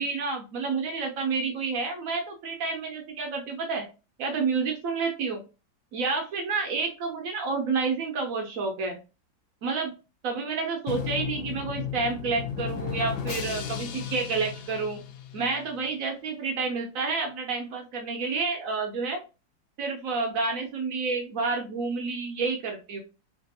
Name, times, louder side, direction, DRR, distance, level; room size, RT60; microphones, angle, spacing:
voice 1, 0.0-3.9 4.2-5.4 5.9-9.0 9.6-9.9 10.2-15.0 15.3-19.2 19.8-23.0, right 4 dB, 70° right, 3 dB, 0.7 m, -29 dB
Drum, 10.9-15.7, left 7 dB, 90° left, 1.3 m, -34 dB
3.2 x 2.6 x 2.6 m, 0.31 s
omnidirectional pair, 2.0 m